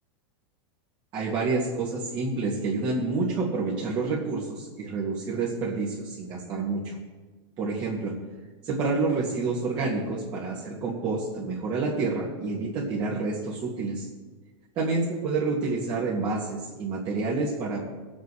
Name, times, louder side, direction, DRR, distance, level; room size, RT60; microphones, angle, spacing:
voice 1, 1.1-7.0 7.6-8.1 8.6-14.1 14.8-17.8, right 3 dB, 30° right, -4 dB, 2.0 m, -28 dB
23.0 x 8.3 x 3.2 m, 1.3 s
supercardioid pair, 145°, 14 cm